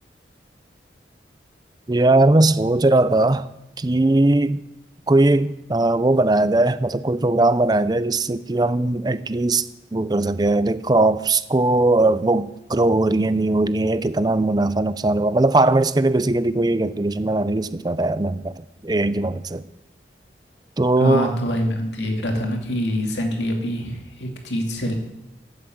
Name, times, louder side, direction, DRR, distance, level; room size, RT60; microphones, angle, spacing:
voice 1, 1.9-3.5 3.8-4.6 5.1-9.6 9.9-18.5 18.8-19.6 20.8-21.3, right 2 dB, 25° right, 0.5 m, -19 dB
voice 2, 21.0-24.9, equal, 85° left, 2.4 m, -25 dB
12.0 x 8.2 x 7.7 m
head